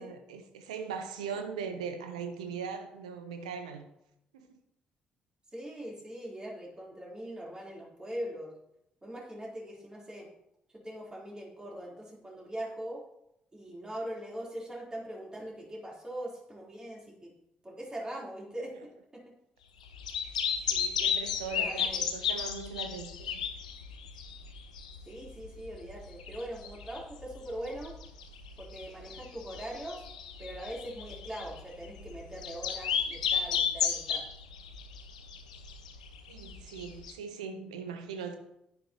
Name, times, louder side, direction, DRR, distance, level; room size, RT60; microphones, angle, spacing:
voice 1, 0.0-3.8 4.3-4.6 18.7-18.8 20.7-23.4 36.3-38.4, right 6 dB, 75° right, 0.9 m, -40 dB
voice 2, 5.5-8.5 9.0-10.3 10.7-13.0 13.5-17.3 17.6-19.3 21.5-22.0 25.1-28.0 28.6-30.0 30.4-34.2, right 1 dB, 20° right, 3.9 m, -41 dB
sound 1, 19.9-37.1, left 7 dB, 80° left, 0.7 m, -34 dB
11.0 x 10.0 x 3.0 m
figure-of-eight pair, 40°, 4 cm